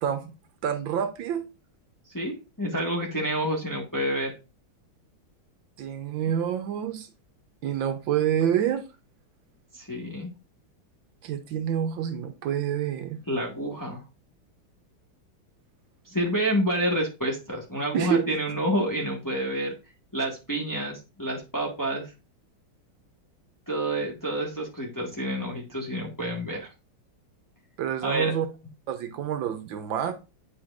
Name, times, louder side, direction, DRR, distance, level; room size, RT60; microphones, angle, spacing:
voice 1, 0.0-0.3 0.6-1.5 5.8-7.1 7.6-8.8 11.2-13.2 17.9-18.2 27.8-28.5 28.9-30.1, right 9 dB, 75° right, 1.4 m, -27 dB
voice 2, 2.1-4.3 9.7-10.3 13.3-14.0 16.1-19.7 20.1-22.1 23.7-26.7 28.0-28.3, right 1 dB, 10° left, 1.2 m, -28 dB
8.8 x 4.8 x 2.4 m
omnidirectional pair, 2.3 m